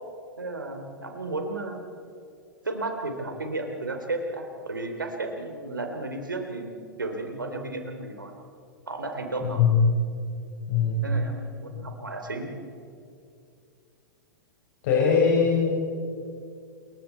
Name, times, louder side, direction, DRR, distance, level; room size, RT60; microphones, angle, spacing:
voice 1, 0.4-1.8 2.6-8.3 8.9-9.7 11.0-12.5, right 2 dB, 80° right, 4 dB, 3.5 m, -33 dB
voice 2, 10.7-11.1 14.8-15.7, left 6 dB, 50° left, -3 dB, 5.4 m, -21 dB
27.5 x 23.0 x 4.6 m, 2.4 s
figure-of-eight pair, 100°, 11 cm